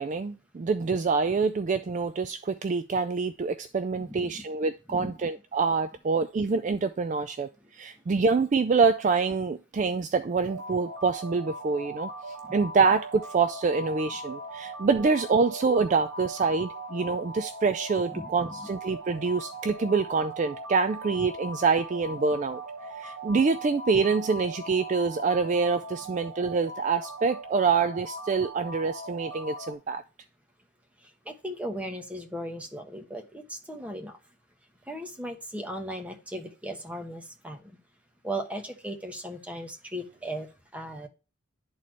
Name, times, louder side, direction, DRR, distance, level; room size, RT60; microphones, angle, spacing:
voice 1, 0.0-12.1 12.5-22.6 22.9-30.0, right 4 dB, 35° right, 0.3 m, -26 dB
voice 2, 3.9-4.5 4.9-5.2 12.4-12.5 18.1-18.7 31.3-34.2 34.9-37.6 38.2-40.5 40.7-41.1, right 1 dB, 5° right, 1.1 m, -37 dB
sound 1, 10.4-29.7, right 2 dB, 85° right, 0.9 m, -40 dB
11.0 x 4.2 x 3.0 m
head